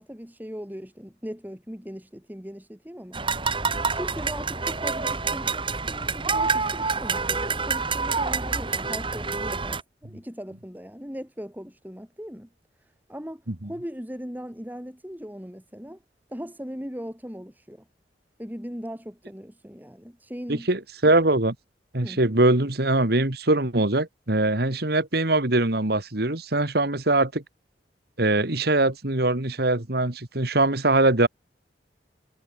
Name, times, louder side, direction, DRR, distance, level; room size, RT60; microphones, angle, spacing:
voice 1, 0.0-3.2 3.9-12.5 12.8-16.0 16.3-17.9 18.4-20.7 22.0-22.2, equal, 10° right, 5.1 m, -39 dB
sound 1, 3.1-9.8, right 4 dB, 30° right, 2.4 m, -27 dB
voice 2, 20.5-21.6 21.9-27.4 28.2-31.3, right 2 dB, 60° right, 2.2 m, -22 dB
head